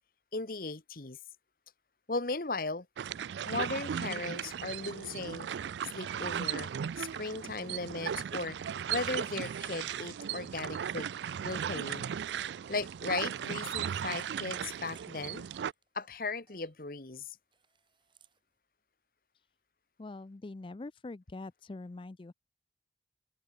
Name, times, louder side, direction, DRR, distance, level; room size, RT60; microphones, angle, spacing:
voice 1, 0.3-1.2 2.1-2.9 3.4-5.5 5.9-6.7 7.0-8.6 8.9-11.1 11.4-12.0 12.7-15.4 15.9-17.4, left 3 dB, 50° left, 1.3 m, -37 dB
sound 1, 3.0-15.7, right 8 dB, 80° right, 0.4 m, -37 dB
Camera, 8.8-8.9 9.1-10.7 11.1-11.2 11.9-12.4 13.3-15.1 15.4-16.1 16.4-16.7 17.5-18.4, right 7 dB, 25° right, 3.4 m, -59 dB
voice 2, 20.0-22.3, left 2 dB, 30° left, 0.4 m, -44 dB
head